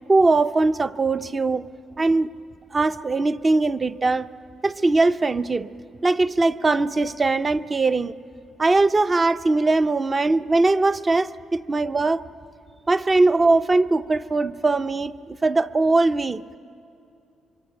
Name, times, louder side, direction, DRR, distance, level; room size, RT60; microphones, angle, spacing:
voice 1, 0.1-1.7 2.0-2.3 2.7-4.3 4.6-5.7 6.0-8.1 8.6-12.2 12.9-16.4, right 3 dB, 30° right, 0.6 m, -20 dB
24.5 x 23.5 x 9.0 m
cardioid pair, 90°, 0 cm